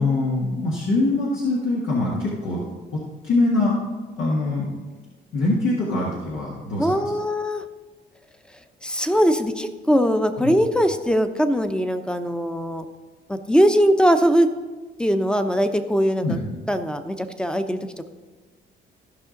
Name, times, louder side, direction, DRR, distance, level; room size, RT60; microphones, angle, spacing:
voice 1, 0.0-2.6 2.9-3.8 4.2-4.7 5.3-7.1 10.4-10.5 16.2-16.4, left 2 dB, 80° left, -5 dB, 1.8 m, -23 dB
voice 2, 6.8-7.6 8.8-12.8 13.3-14.5 15.0-16.4 16.7-17.8, equal, 5° left, 8 dB, 0.7 m, -21 dB
15.0 x 5.5 x 3.9 m, 1.3 s
cardioid pair, 90°, 20 cm